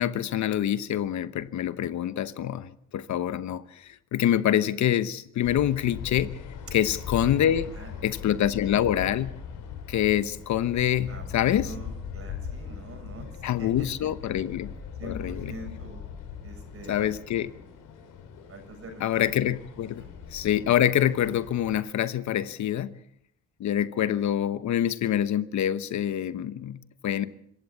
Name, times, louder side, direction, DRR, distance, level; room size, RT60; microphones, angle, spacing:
voice 1, 0.0-6.4 6.7-7.7 8.0-9.3 9.9-11.7 13.4-14.7 15.0-15.5 16.9-17.5 19.0-20.0 20.3-22.9 23.6-27.3, left 11 dB, 70° left, 1.0 m, -26 dB
sound 1, 5.4-21.8, left 7 dB, 85° left, 3.6 m, -40 dB
voice 2, 7.5-8.2 11.1-13.9 15.0-16.0 16.4-17.2 18.5-19.4 20.0-20.1, right 2 dB, 50° right, 7.5 m, -45 dB
26.0 x 15.0 x 7.2 m
cardioid pair, 90°, 30 cm